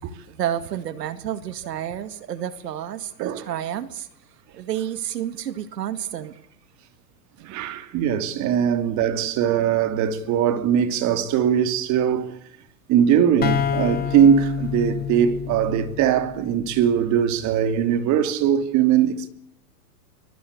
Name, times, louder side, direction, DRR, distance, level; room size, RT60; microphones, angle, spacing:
voice 1, 0.3-4.1 4.5-6.4 7.4-7.5 14.0-14.3, right 10 dB, 85° right, 2.1 m, -30 dB
voice 2, 7.4-12.4 12.9-19.3, right 9 dB, 35° right, 2.9 m, -21 dB
sound 1, 13.4-17.1, left 8 dB, 20° left, 2.0 m, -28 dB
25.5 x 23.0 x 8.4 m
hypercardioid pair, 135°, 47 cm